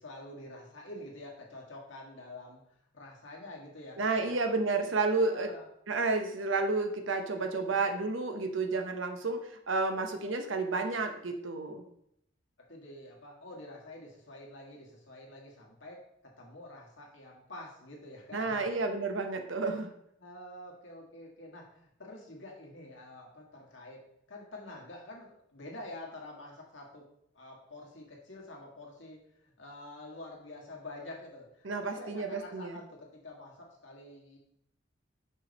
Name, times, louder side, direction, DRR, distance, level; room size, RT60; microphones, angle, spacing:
voice 1, 0.0-2.6 2.9-4.4 5.2-5.7 12.7-18.7 20.2-24.0 24.3-27.0 27.3-34.4, left 1 dB, 70° left, -2 dB, 1.8 m, -47 dB
voice 2, 4.0-5.5 5.9-11.8 18.3-19.9 31.6-32.8, right 3 dB, 75° right, 6 dB, 0.9 m, -31 dB
5.5 x 5.2 x 4.1 m, 0.75 s
head